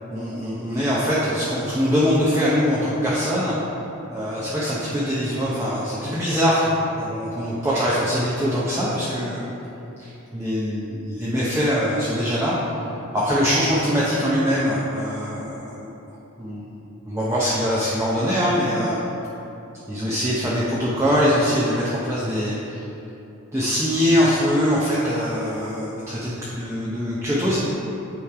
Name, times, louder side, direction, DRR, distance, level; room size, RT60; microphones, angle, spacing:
voice 1, 0.1-3.6 4.1-9.4 10.0-12.8 13.1-15.9 16.4-19.0 19.9-22.8 23.5-27.6, equal, 15° right, -8 dB, 0.7 m, -23 dB
8.6 x 3.2 x 4.9 m, 3.0 s
head